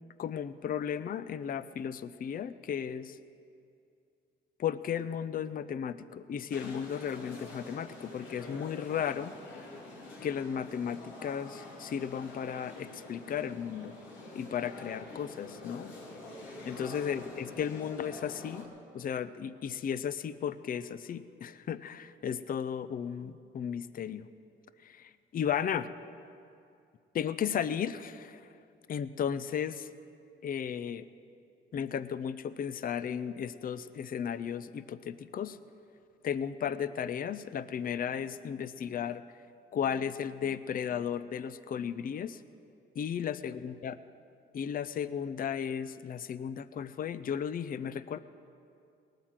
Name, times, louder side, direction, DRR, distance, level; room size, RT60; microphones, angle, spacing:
voice 1, 0.2-3.2 4.6-9.3 10.2-13.9 14.3-15.9 16.7-18.7 18.9-24.3 24.8-25.9 27.1-28.4 28.9-29.9 30.4-31.1 31.7-35.6 36.2-39.2 39.7-42.4 43.0-43.9 44.5-48.2, left 8 dB, 45° left, 14 dB, 0.5 m, -35 dB
sound 1, 6.5-18.6, left 2 dB, 85° left, 3.1 m, -47 dB
19.0 x 9.1 x 7.4 m, 2.5 s
cardioid pair, 90°, 20 cm